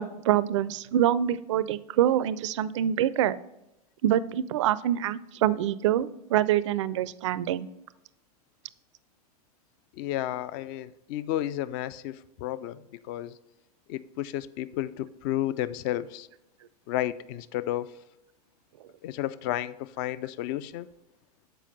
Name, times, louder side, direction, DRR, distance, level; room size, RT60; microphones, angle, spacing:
voice 1, 0.0-3.4 4.0-7.7, right 11 dB, 50° right, 0.4 m, -25 dB
voice 2, 10.0-12.8 13.1-13.3 13.9-16.3 16.9-17.9 19.0-20.9, left 13 dB, 35° left, 0.4 m, -32 dB
6.9 x 5.0 x 5.2 m
figure-of-eight pair, 95°, 20 cm